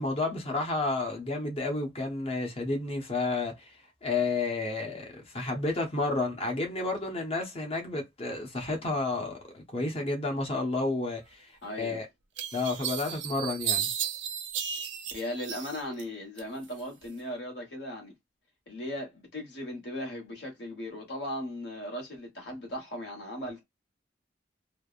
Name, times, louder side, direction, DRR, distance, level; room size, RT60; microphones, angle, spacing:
voice 1, 0.0-3.5 4.0-11.4 11.8-12.1 12.5-13.9, left 3 dB, 35° left, 0.9 m, -31 dB
voice 2, 11.6-12.0 15.1-18.1 18.7-23.6, left 1 dB, 65° left, 1.5 m, -37 dB
sound 1, 11.6-11.7 12.4-16.0 16.4-17.1, right 9 dB, 90° right, 0.6 m, -34 dB
3.2 x 2.1 x 2.4 m
head